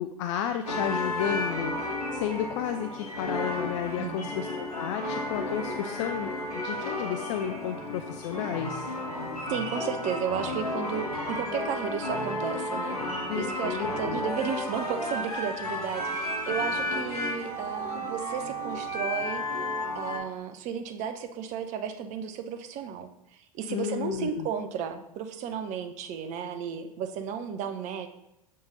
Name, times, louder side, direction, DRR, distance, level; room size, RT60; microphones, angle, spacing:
voice 1, 0.0-8.9 13.3-14.2 23.7-24.5, left 10 dB, 55° left, 7 dB, 0.4 m, -32 dB
sound 1, 0.7-20.2, left 1 dB, 85° left, 1.0 m, -32 dB
voice 2, 4.0-4.3 9.5-13.0 13.3-19.4 19.9-28.1, right 8 dB, 40° right, 9 dB, 0.7 m, -34 dB
7.0 x 3.8 x 3.8 m, 0.85 s
figure-of-eight pair, 85°, 19 cm